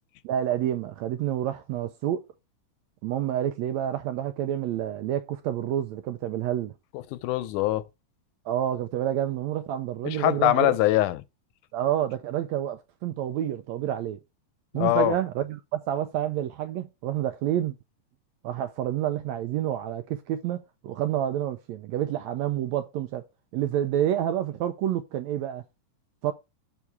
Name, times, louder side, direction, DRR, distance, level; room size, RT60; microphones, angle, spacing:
voice 1, 0.2-2.2 3.0-6.7 8.5-10.8 11.7-14.2 14.7-17.8 18.4-23.2 23.5-25.6 26.2-26.3, right 11 dB, 80° right, 1.6 m, -28 dB
voice 2, 7.1-7.8 10.1-11.2 14.7-15.1, left 16 dB, 80° left, 2.1 m, -23 dB
7.2 x 6.2 x 4.7 m
omnidirectional pair, 3.8 m